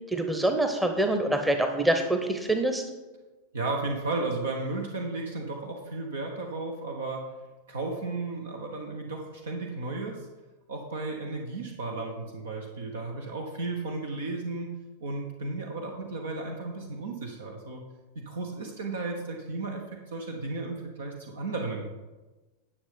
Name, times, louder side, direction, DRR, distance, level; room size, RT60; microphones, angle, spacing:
voice 1, 0.1-2.9, right 1 dB, 5° right, 5 dB, 0.9 m, -25 dB
voice 2, 3.5-7.2 7.7-10.3 10.7-14.7 15.0-17.8 18.1-21.8, right 3 dB, 65° right, 1 dB, 1.2 m, -34 dB
10.5 x 6.8 x 5.1 m, 1.2 s
figure-of-eight pair, 90°, 0 cm